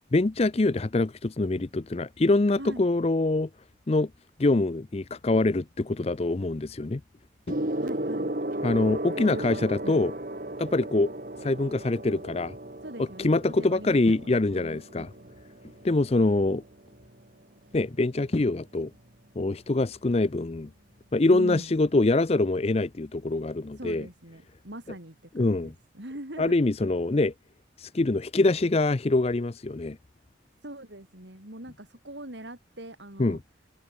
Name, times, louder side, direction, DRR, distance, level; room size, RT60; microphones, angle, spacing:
voice 1, 0.1-3.5 3.9-4.1 4.4-7.0 8.6-10.1 10.6-11.1 11.4-12.6 13.0-15.1 15.8-16.6 17.7-18.9 19.4-20.7 21.1-24.1 25.4-25.7 26.4-27.3 27.8-30.0 33.2-33.4, left 2 dB, 30° left, 0.5 m, -24 dB
Gong, 7.5-17.2 18.2-18.4, right 1 dB, 45° right, 2.2 m, -35 dB
voice 2, 7.8-8.3 9.2-10.0 12.8-13.3 13.6-15.3 21.3-21.7 23.8-26.5 30.6-33.4, right 1 dB, 65° right, 4.7 m, -42 dB
head